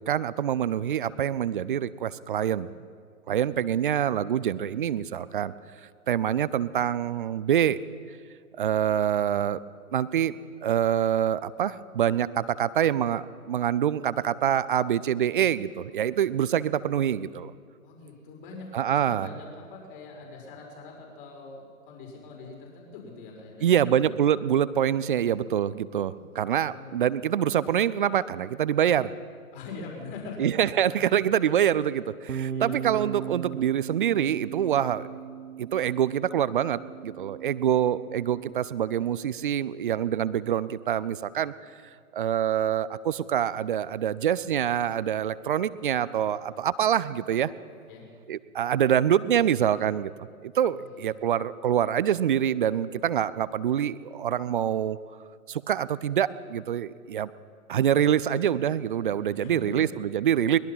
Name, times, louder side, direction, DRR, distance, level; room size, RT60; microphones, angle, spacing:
voice 1, 0.1-2.7 3.3-5.5 6.1-7.8 8.6-9.6 9.9-17.5 18.7-19.3 23.6-29.1 30.4-35.0 35.6-41.5 42.1-47.5 48.3-55.0 55.5-57.3 57.7-60.6, right 10 dB, 35° right, 17 dB, 0.6 m, -25 dB
voice 2, 17.8-24.1 26.1-27.0 29.5-31.2 31.9-32.0 32.5-32.8 47.9-48.0 50.7-51.1 59.2-59.9, left 3 dB, 35° left, 0 dB, 5.1 m, -43 dB
Bass guitar, 32.3-38.5, right 8 dB, 90° right, 0.6 m, -37 dB
22.0 x 20.5 x 5.7 m, 2.1 s
figure-of-eight pair, 125°, 43 cm